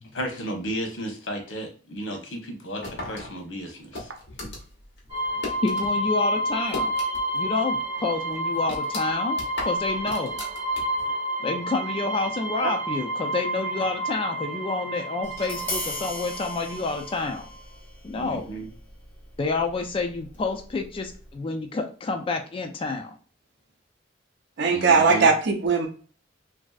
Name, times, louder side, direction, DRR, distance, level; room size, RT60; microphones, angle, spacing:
voice 1, 0.1-4.1 18.1-18.7 24.7-25.3, right 1 dB, 90° left, 0.9 m, -33 dB
sound 1, 2.8-5.9 6.2-7.4 7.7-7.8 8.3-11.1, left 2 dB, 60° left, 1.1 m, -37 dB
sound 2, 5.1-17.6, right 1 dB, 35° right, 0.9 m, -30 dB
voice 2, 5.6-6.9 7.3-9.4 9.7-10.3 11.4-17.5 18.0-18.5 19.4-23.1, left 3 dB, 30° left, 0.3 m, -28 dB
Tap, 15.2-21.4, left 1 dB, 10° left, 1.0 m, -39 dB
voice 3, 24.6-25.9, right 4 dB, 65° right, 0.5 m, -19 dB
3.0 x 2.6 x 2.3 m
head